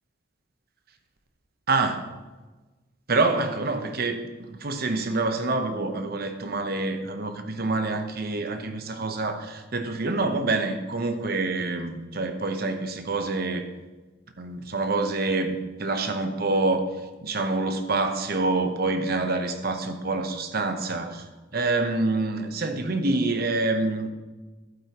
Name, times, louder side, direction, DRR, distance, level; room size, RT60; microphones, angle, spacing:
voice 1, 1.7-2.1 3.1-13.7 14.4-16.9 17.2-21.2 21.5-24.1, right 3 dB, 50° right, 7 dB, 0.9 m, -26 dB
11.5 x 8.9 x 3.0 m, 1.2 s
head